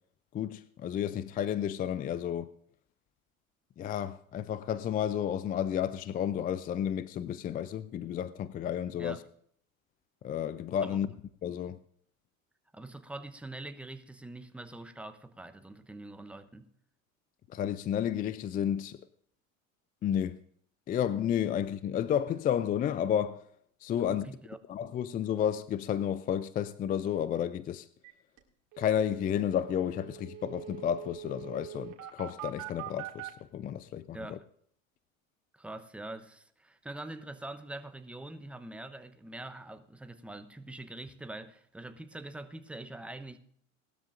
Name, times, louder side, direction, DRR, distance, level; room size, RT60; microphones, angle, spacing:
voice 1, 0.3-2.5 3.8-9.2 10.2-11.1 11.4-11.8 17.5-19.0 20.0-20.4 20.9-23.4 23.8-24.3 24.7-27.9 28.8-34.4, left 9 dB, 20° left, 0.4 m, -31 dB
voice 2, 10.8-11.1 12.7-16.7 24.0-24.8 34.1-34.4 35.5-43.4, right 2 dB, 5° right, 0.8 m, -44 dB
sound 1, 28.0-28.1 28.4-28.5 28.7-33.3, right 12 dB, 50° right, 2.3 m, -43 dB
19.0 x 13.0 x 2.5 m
hypercardioid pair, 90°, 42 cm